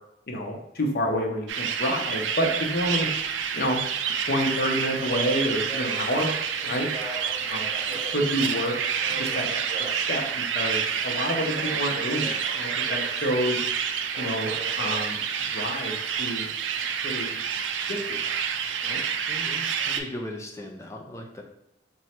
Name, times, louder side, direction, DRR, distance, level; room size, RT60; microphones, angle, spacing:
voice 1, 0.3-3.1 3.5-3.8 4.3-6.3 6.6-6.9 7.4-8.7 9.2-9.5 9.9-13.6 14.2-14.5 14.8-15.2 15.5-16.5 17.0-17.4 17.9-18.3 18.8-19.0, equal, 55° left, 0 dB, 0.7 m, -28 dB
sound 1, 1.5-20.0, right 7 dB, 90° right, 0.3 m, -29 dB
Subway metro underground, 1.7-20.1, right 2 dB, 35° right, 0.8 m, -43 dB
voice 2, 19.3-21.4, left 1 dB, 15° left, 1 dB, 0.5 m, -38 dB
3.0 x 2.3 x 4.3 m, 0.81 s
head